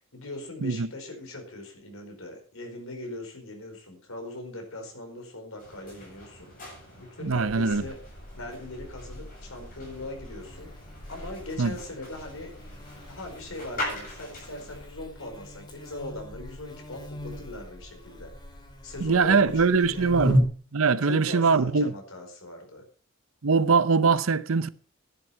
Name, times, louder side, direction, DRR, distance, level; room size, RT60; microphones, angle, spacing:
voice 1, 0.0-6.5 7.0-8.0 8.3-10.7 11.1-12.5 13.1-18.3 18.8-20.3 21.0-22.8, left 2 dB, 80° left, 4.7 m, -40 dB
sound 1, 5.6-14.9, left 1 dB, 40° left, 7.4 m, -42 dB
voice 2, 7.2-7.8 11.6-11.8 19.0-20.5 20.7-21.9 23.4-24.7, right 4 dB, 80° right, 0.7 m, -22 dB
Buzz, 7.3-20.4, right 1 dB, 20° left, 2.6 m, -35 dB
11.0 x 11.0 x 5.8 m
head